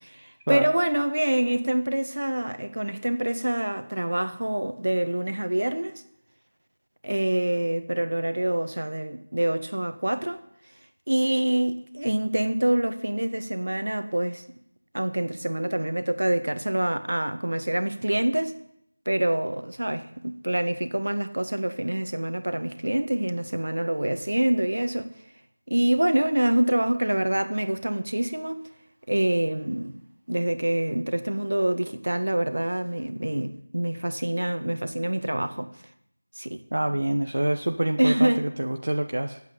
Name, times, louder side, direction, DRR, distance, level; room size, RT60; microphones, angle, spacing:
voice 1, 0.0-6.0 7.0-10.4 11.1-14.4 14.9-18.6 19.0-25.1 25.7-28.7 29.1-30.0 30.3-35.7 36.3-36.6 36.9-37.0 38.0-38.4, right 1 dB, 85° right, 1.7 m, -26 dB
voice 2, 36.7-39.4, right 1 dB, 65° right, 1.1 m, -26 dB
19.0 x 8.4 x 8.7 m
figure-of-eight pair, 180°, 0 cm